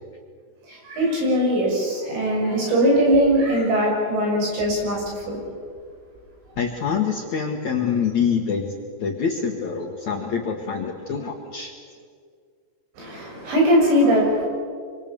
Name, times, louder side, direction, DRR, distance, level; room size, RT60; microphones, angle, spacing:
voice 1, 0.9-5.4 13.0-14.5, equal, 75° right, -2 dB, 9.1 m, -20 dB
voice 2, 6.6-11.7, left 6 dB, 60° left, 2 dB, 2.1 m, -25 dB
26.5 x 25.0 x 7.0 m, 2.1 s
omnidirectional pair, 5.2 m